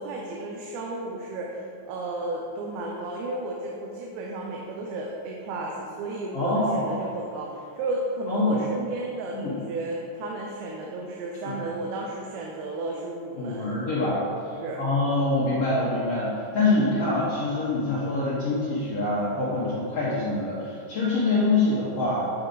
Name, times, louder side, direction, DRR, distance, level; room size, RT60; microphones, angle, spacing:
voice 1, 0.0-13.7 14.6-14.8, right 2 dB, 90° right, -1 dB, 2.7 m, -33 dB
voice 2, 6.3-6.9 8.3-8.6 9.3-9.6 11.4-11.5 13.4-14.2 14.8-22.3, left 2 dB, 75° left, -8 dB, 1.4 m, -25 dB
8.8 x 4.6 x 3.9 m, 2.5 s
omnidirectional pair, 4.4 m